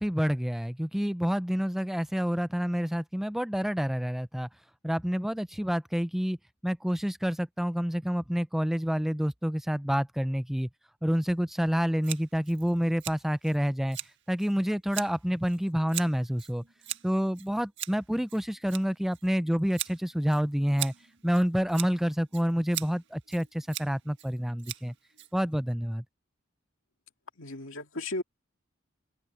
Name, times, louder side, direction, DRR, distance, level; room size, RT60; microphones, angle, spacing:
voice 1, 0.0-4.5 4.8-6.4 6.6-10.7 11.0-14.0 14.3-16.6 17.0-20.9 21.2-24.9 25.3-26.0, equal, ahead, 0.3 m, -28 dB
Scissors, 12.0-25.7, right 12 dB, 60° right, 1.7 m, -41 dB
voice 2, 27.4-28.2, left 2 dB, 75° left, 2.3 m, -35 dB
open air
head